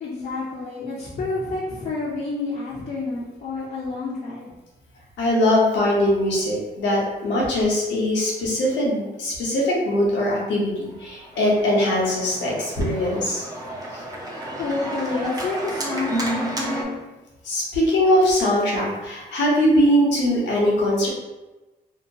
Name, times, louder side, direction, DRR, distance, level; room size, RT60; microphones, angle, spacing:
voice 1, 0.0-4.5 14.6-17.1, left 3 dB, 55° left, -7 dB, 0.7 m, -29 dB
voice 2, 5.2-13.4 13.9-14.0 17.4-21.1, left 1 dB, 80° left, -4 dB, 0.9 m, -21 dB
Organ, 11.0-16.8, right 1 dB, 20° right, 0.7 m, -31 dB
2.8 x 2.1 x 2.7 m, 1.1 s
cardioid pair, 75°, 18 cm